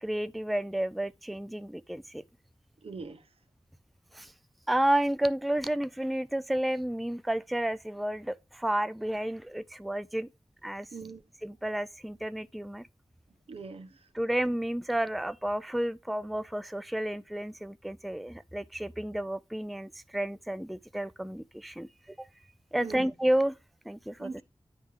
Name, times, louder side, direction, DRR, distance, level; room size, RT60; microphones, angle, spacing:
voice 1, 0.0-2.2 4.1-4.3 4.7-10.3 10.6-10.9 11.4-12.9 14.2-22.3 22.7-23.5 23.9-24.4, right 1 dB, ahead, 0.3 m, -31 dB
voice 2, 2.8-3.3 10.9-11.2 13.5-14.1 22.8-23.1 24.2-24.4, right 4 dB, 85° right, 1.0 m, -42 dB
9.4 x 3.3 x 4.7 m
wide cardioid pair, 95°, 10 cm